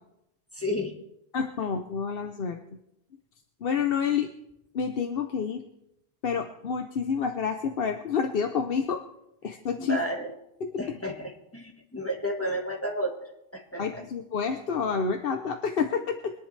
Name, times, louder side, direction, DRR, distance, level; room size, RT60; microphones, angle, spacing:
voice 1, 0.5-0.9 9.8-10.4 10.8-14.0, equal, 15° left, -1 dB, 1.6 m, -32 dB
voice 2, 1.3-2.6 3.6-4.3 4.7-5.6 6.2-9.0 9.4-10.0 13.8-16.3, left 6 dB, 65° left, 6 dB, 1.0 m, -28 dB
23.0 x 10.5 x 3.3 m, 0.86 s
omnidirectional pair, 1.1 m